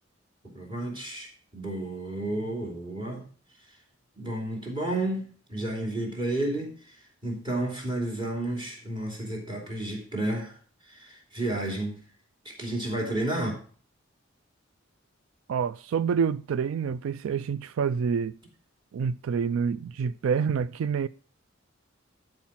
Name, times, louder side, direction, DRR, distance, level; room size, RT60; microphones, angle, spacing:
voice 1, 0.4-3.2 4.2-5.2 5.5-10.6 10.9-12.0 12.4-13.6, right 1 dB, 25° right, 2.9 m, -31 dB
voice 2, 15.5-18.4 18.9-21.1, right 6 dB, 85° right, 0.3 m, -27 dB
11.5 x 4.9 x 5.6 m
head